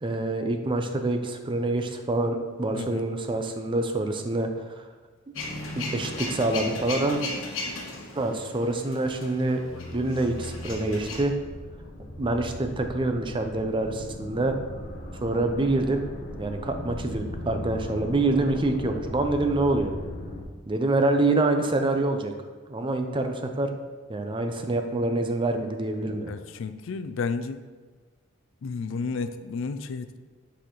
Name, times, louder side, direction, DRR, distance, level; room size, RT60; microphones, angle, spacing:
voice 1, 0.0-4.8 5.7-7.2 8.1-9.6 9.9-11.3 12.2-14.5 15.2-16.0 16.4-19.9 20.7-22.3 22.7-23.7 24.1-26.4, right 2 dB, 25° right, 5 dB, 0.5 m, -26 dB
Male speech man speaking / Vehicle / Engine starting, 5.3-11.2, left 2 dB, 90° left, 1.2 m, -36 dB
sound 1, 9.1-20.4, left 1 dB, 40° left, 0.8 m, -39 dB
voice 2, 26.0-27.6 28.6-30.2, left 4 dB, 70° left, 11 dB, 0.4 m, -32 dB
7.9 x 4.2 x 3.1 m, 1.4 s
head